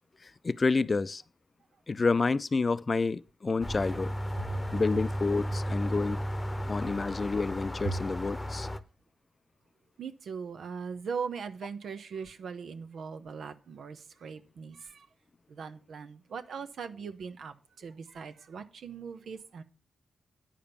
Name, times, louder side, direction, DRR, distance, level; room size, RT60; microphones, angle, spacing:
voice 1, 0.2-1.2 1.9-4.1 4.7-6.2 6.7-8.7, left 4 dB, 45° left, 0.4 m, -29 dB
sound 1, 3.6-8.8, equal, 20° left, 0.9 m, -34 dB
voice 2, 4.4-4.7 7.8-8.0 10.0-15.1 15.5-19.6, right 5 dB, 75° right, 0.8 m, -39 dB
9.2 x 5.1 x 7.0 m
supercardioid pair, 40°, 0 cm